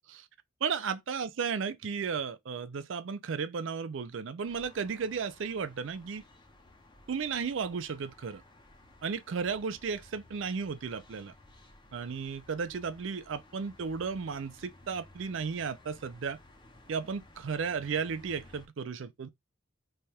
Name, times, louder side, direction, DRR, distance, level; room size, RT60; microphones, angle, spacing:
voice 1, 0.6-6.2 7.1-8.4 9.0-11.3 11.9-16.4 16.9-19.3, right 5 dB, 65° right, 0.4 m, -34 dB
sound 1, 4.5-18.7, left 1 dB, 20° left, 0.7 m, -57 dB
3.4 x 2.3 x 4.2 m
head